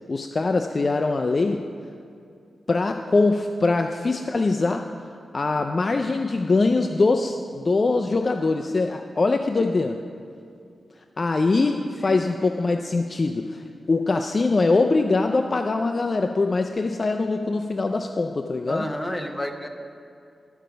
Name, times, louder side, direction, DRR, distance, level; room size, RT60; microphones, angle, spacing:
voice 1, 0.1-1.7 2.7-4.9 5.3-10.0 11.2-18.8, left 3 dB, 35° left, 5 dB, 0.3 m, -23 dB
voice 2, 18.7-19.7, left 1 dB, 10° left, 3 dB, 0.7 m, -30 dB
12.0 x 5.1 x 6.7 m, 2.4 s
wide cardioid pair, 160°, 0 cm